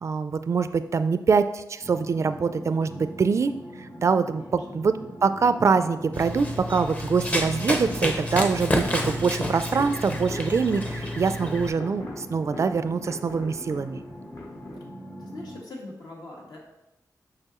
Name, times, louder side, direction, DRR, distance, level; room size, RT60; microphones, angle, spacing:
voice 1, 0.0-3.5 3.8-4.9 5.2-14.0, right 5 dB, 45° right, 11 dB, 0.3 m, -24 dB
sound 1, 1.8-15.6, equal, 35° left, 1.5 m, -42 dB
voice 2, 4.4-4.8 15.2-16.6, left 2 dB, 75° left, -2 dB, 1.5 m, -42 dB
Run, 6.1-11.7, left 1 dB, 20° left, 0.6 m, -29 dB
sound 2, 7.7-14.8, left 2 dB, 55° left, 1.1 m, -43 dB
6.7 x 5.9 x 3.0 m, 0.92 s
wide cardioid pair, 155°, 7 cm